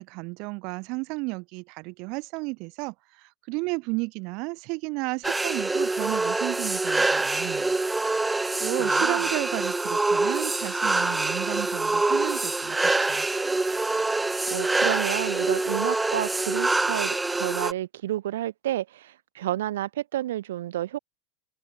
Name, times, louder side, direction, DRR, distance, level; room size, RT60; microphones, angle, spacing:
voice 1, 0.0-7.8 8.6-13.3, right 28 dB, 60° right, 5.6 m, -33 dB
sound 1, 5.2-17.7, right 2 dB, 10° right, 3.9 m, -25 dB
voice 2, 8.8-9.2 14.5-21.0, right 13 dB, 85° right, 5.2 m, -31 dB
open air
supercardioid pair, 105°, 0 cm